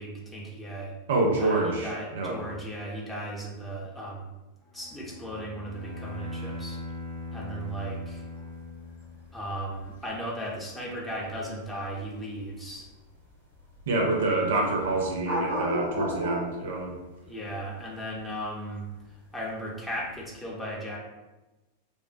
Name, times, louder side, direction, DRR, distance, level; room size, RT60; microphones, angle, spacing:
voice 1, 0.0-0.9 1.4-4.3 4.7-6.8 7.3-8.2 9.3-12.9 14.2-14.5 17.2-18.9 19.3-21.0, right 1 dB, 10° left, -4 dB, 0.7 m, -36 dB
voice 2, 1.1-2.4 13.9-17.0, right 2 dB, 60° right, 0 dB, 0.5 m, -27 dB
Bowed string instrument, 4.7-9.5, left 2 dB, 45° left, 0.8 m, -40 dB
sound 1, 5.7-20.3, equal, 90° left, 1.1 m, -36 dB
3.2 x 2.0 x 2.5 m, 1.1 s
figure-of-eight pair, 90°, 0 cm